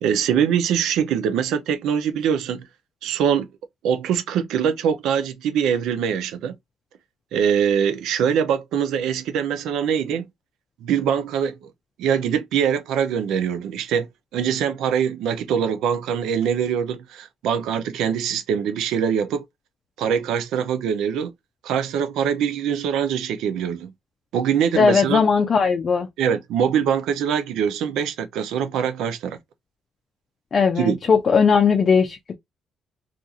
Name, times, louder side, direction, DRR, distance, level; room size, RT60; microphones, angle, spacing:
voice 1, 0.0-2.7 3.0-3.5 3.8-6.5 7.3-10.3 10.8-11.6 12.0-19.4 20.0-21.3 21.6-23.9 24.3-25.3 26.2-29.4 30.8-31.0, right 8 dB, 85° right, 0.4 m, -23 dB
voice 2, 24.7-26.1 30.5-32.2, left 5 dB, 45° left, 0.4 m, -18 dB
2.5 x 2.3 x 2.6 m
cardioid pair, 90°, 0 cm